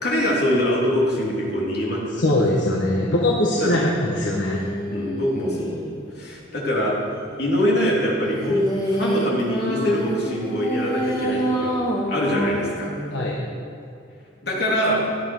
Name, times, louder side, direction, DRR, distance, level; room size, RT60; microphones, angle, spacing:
voice 1, 0.0-2.2 3.6-3.8 4.9-5.8 6.1-6.9 7.4-11.7 12.1-12.9 14.4-15.0, equal, 55° left, -5 dB, 3.5 m, -23 dB
voice 2, 2.2-4.7 11.2-11.4 13.1-13.4, left 1 dB, 70° left, -3 dB, 1.5 m, -22 dB
sound 1, 4.3-6.0 8.3-13.3, right 1 dB, 20° left, 2.0 m, -27 dB
16.5 x 11.0 x 4.7 m, 2.5 s
head